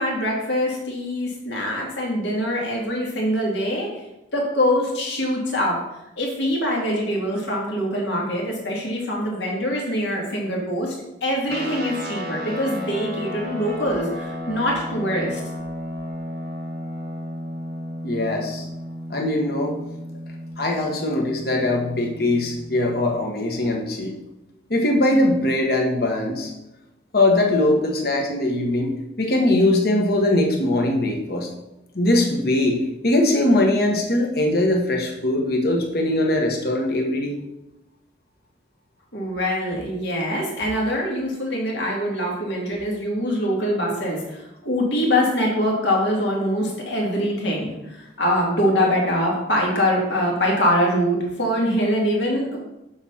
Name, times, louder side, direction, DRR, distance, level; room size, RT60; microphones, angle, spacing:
voice 1, 0.0-4.0 4.3-5.8 6.2-10.9 11.2-15.4 39.1-52.6, equal, 75° left, -2 dB, 2.3 m, -23 dB
sound 1, 11.5-23.2, equal, 55° right, 1.0 m, -33 dB
voice 2, 18.0-18.7 19.1-19.8 20.6-24.1 24.7-26.5 27.1-28.9 29.2-31.5 31.9-37.3, left 1 dB, 55° left, 1 dB, 1.3 m, -21 dB
7.1 x 4.2 x 5.6 m, 0.91 s
head